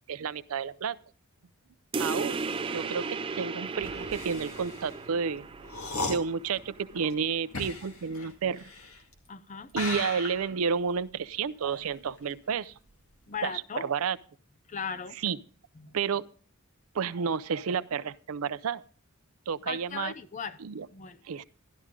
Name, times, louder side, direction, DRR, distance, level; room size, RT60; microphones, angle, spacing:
voice 1, 0.1-1.0 2.0-5.4 6.1-8.7 9.7-12.7 13.4-14.2 15.2-15.4 15.9-16.3 16.9-18.8 19.5-20.1 20.6-20.9 21.2-21.4, right 6 dB, 90° right, 0.5 m, -31 dB
sound 1, 1.9-7.0, right 4 dB, 25° right, 0.5 m, -35 dB
sound 2, 3.7-9.3 9.7-12.6 12.9-13.3, left 3 dB, 80° left, 2.0 m, -38 dB
voice 2, 9.3-9.7 13.3-13.9 14.7-15.2 15.8-15.9 19.7-20.6 20.9-21.2, left 6 dB, 35° left, 0.6 m, -37 dB
12.5 x 11.5 x 3.7 m
head